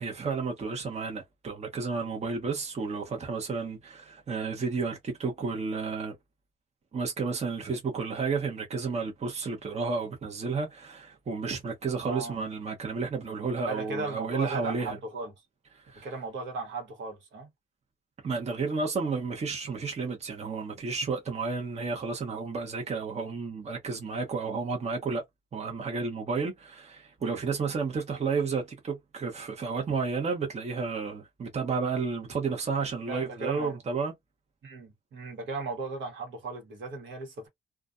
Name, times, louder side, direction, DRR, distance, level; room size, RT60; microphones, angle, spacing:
voice 1, 0.0-6.2 6.9-15.0 15.7-16.1 18.2-25.2 25.5-34.1, right 4 dB, 35° right, 0.9 m, -32 dB
voice 2, 12.0-12.4 13.6-15.3 16.0-17.5 33.1-33.8 34.6-37.5, right 3 dB, 70° right, 1.2 m, -36 dB
2.4 x 2.3 x 2.5 m
cardioid pair, 90°, 20 cm